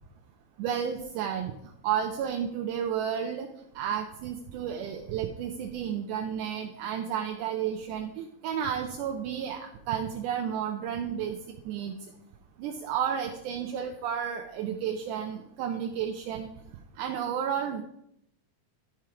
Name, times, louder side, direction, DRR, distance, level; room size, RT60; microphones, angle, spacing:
voice 1, 0.6-1.5 1.8-3.5 3.8-11.4 11.7-11.9 12.6-16.5 17.0-17.8, right 8 dB, 80° right, 4 dB, 2.1 m, -32 dB
12.5 x 4.5 x 4.8 m, 0.78 s
omnidirectional pair, 3.8 m